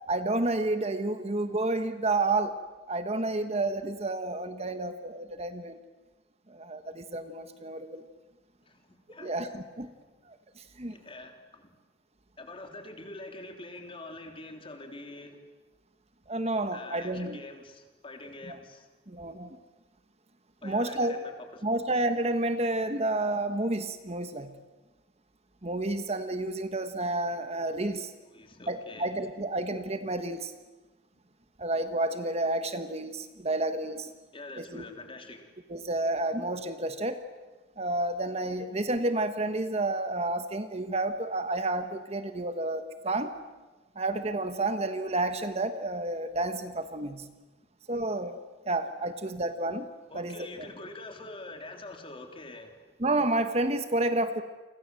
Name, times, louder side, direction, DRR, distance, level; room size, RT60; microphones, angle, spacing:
voice 1, 0.1-2.6 2.9-5.8 6.5-8.0 9.2-9.9 10.3-11.0 16.3-17.4 18.5-18.6 19.1-19.6 20.6-21.2 21.6-24.5 25.6-28.1 28.7-30.5 31.6-34.1 34.6-34.8 35.7-37.2 37.8-43.3 43.9-47.3 47.9-49.9 50.1-50.4 53.0-54.4, right 2 dB, 35° right, 9 dB, 1.3 m, -30 dB
voice 2, 10.9-11.7 12.4-15.4 16.7-18.9 20.6-21.8 28.2-29.1 34.3-35.5 50.1-52.8, left 2 dB, 30° left, 4 dB, 3.4 m, -45 dB
29.5 x 25.5 x 7.7 m, 1.2 s
head